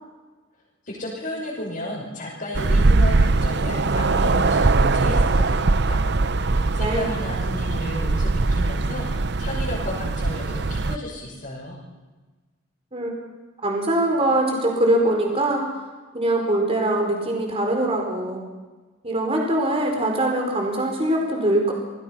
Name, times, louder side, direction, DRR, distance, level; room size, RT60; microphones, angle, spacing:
voice 1, 0.8-11.8, left 1 dB, 45° left, -6 dB, 6.5 m, -33 dB
sound 1, 2.5-11.0, right 3 dB, 60° right, 0.7 m, -21 dB
voice 2, 13.6-15.6 16.1-18.4 19.0-21.7, right 1 dB, 30° right, 1 dB, 4.7 m, -22 dB
28.0 x 20.5 x 5.8 m, 1.3 s
head